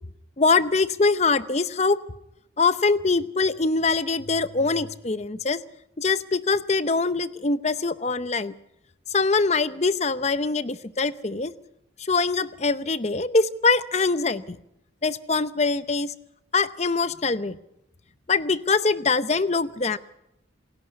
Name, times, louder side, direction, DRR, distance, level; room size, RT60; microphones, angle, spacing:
voice 1, 0.4-2.0 2.6-5.6 6.0-8.5 9.1-11.5 12.0-14.6 15.0-16.1 16.5-17.6 18.3-20.0, left 4 dB, 35° left, 14 dB, 0.7 m, -23 dB
27.0 x 11.5 x 9.5 m, 0.83 s
head